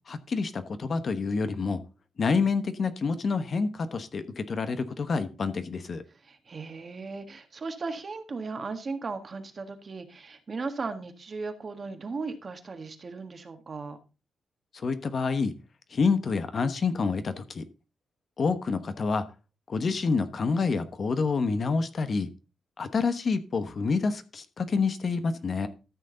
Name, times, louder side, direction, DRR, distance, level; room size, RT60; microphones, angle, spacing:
voice 1, 0.1-1.8 2.2-6.0 14.8-15.5 15.9-17.6 18.4-19.2 19.7-22.3 22.8-25.7, left 4 dB, 45° left, 10 dB, 1.1 m, -28 dB
voice 2, 6.1-14.0, right 4 dB, 40° right, 7 dB, 1.6 m, -37 dB
13.5 x 6.5 x 3.9 m, 0.31 s
cardioid pair, 115°, 0 cm